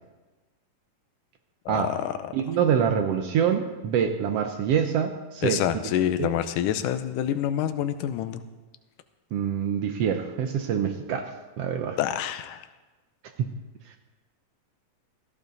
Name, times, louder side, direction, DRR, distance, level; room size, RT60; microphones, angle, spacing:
voice 1, 1.7-2.2 5.4-8.4 12.0-12.7, left 11 dB, 75° left, 10 dB, 2.2 m, -27 dB
voice 2, 2.3-5.6 6.2-6.3 9.3-12.0 13.4-13.5, right 8 dB, 90° right, 5 dB, 1.4 m, -25 dB
17.0 x 14.0 x 4.0 m, 1.2 s
omnidirectional pair, 3.9 m